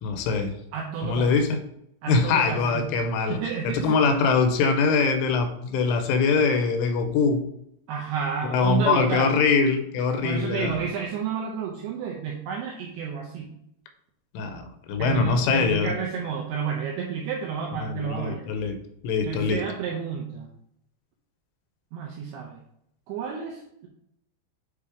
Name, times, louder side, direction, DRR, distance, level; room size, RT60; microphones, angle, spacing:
voice 1, 0.0-0.5 1.0-1.6 2.1-3.4 3.7-7.5 8.5-10.8 14.3-15.9 17.8-18.8 19.0-19.6, left 4 dB, 80° left, 7 dB, 3.1 m, -23 dB
voice 2, 0.7-1.3 2.0-2.9 3.3-4.1 7.9-9.4 10.2-13.5 15.0-18.5 19.2-20.5 21.9-22.6 23.1-23.9, right 7 dB, 80° right, -1 dB, 2.3 m, -31 dB
8.4 x 2.8 x 4.8 m, 0.75 s
omnidirectional pair, 5.6 m